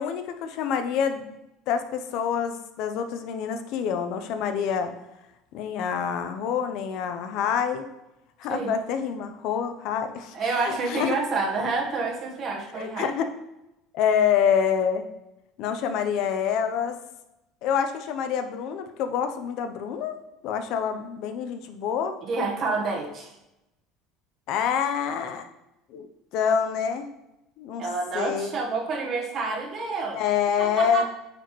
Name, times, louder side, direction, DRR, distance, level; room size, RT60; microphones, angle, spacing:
voice 1, 0.0-1.4 1.7-4.9 5.5-7.9 8.4-11.2 12.7-13.3 13.9-15.1 15.6-17.0 17.6-22.2 24.5-25.5 25.9-26.1 26.3-27.1 27.6-27.9 28.1-28.6 30.1-31.0, left 7 dB, 60° left, 8 dB, 0.6 m, -27 dB
voice 2, 10.3-13.1 22.2-23.3 27.8-30.2 30.6-31.0, right 3 dB, 40° right, 0 dB, 1.3 m, -28 dB
8.6 x 4.1 x 3.1 m, 0.92 s
cardioid pair, 130°, 0 cm